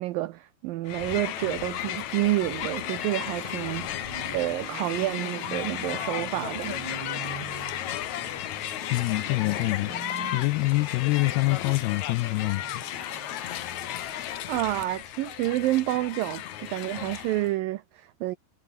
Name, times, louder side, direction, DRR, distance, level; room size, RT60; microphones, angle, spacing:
voice 1, 0.0-6.7 14.5-18.4, right 16 dB, 85° right, 2.0 m, -29 dB
Crowd, 0.8-17.5, left 12 dB, 70° left, 1.8 m, -34 dB
sound 1, 2.1-14.7, right 7 dB, 50° right, 1.5 m, -44 dB
voice 2, 8.9-12.8, left 21 dB, 85° left, 2.3 m, -26 dB
omnidirectional pair, 5.0 m